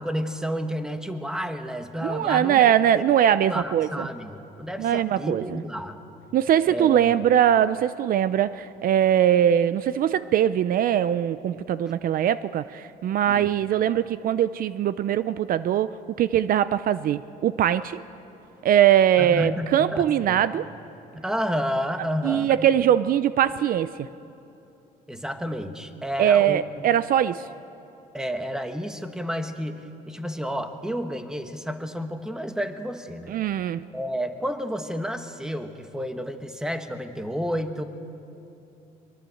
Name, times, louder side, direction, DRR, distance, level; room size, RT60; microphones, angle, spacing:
voice 1, 0.0-3.0 3.5-6.0 6.7-7.2 13.3-13.5 19.2-20.4 21.1-22.6 25.1-26.9 28.1-33.4 33.9-37.8, equal, 5° right, 7 dB, 1.6 m, -31 dB
voice 2, 2.0-4.1 4.8-5.6 6.3-15.9 16.2-18.0 18.6-20.6 22.2-24.1 26.2-27.4 33.3-33.8, right 10 dB, 60° right, 14 dB, 0.6 m, -21 dB
23.0 x 23.0 x 7.8 m, 2.9 s
cardioid pair, 110°, 17 cm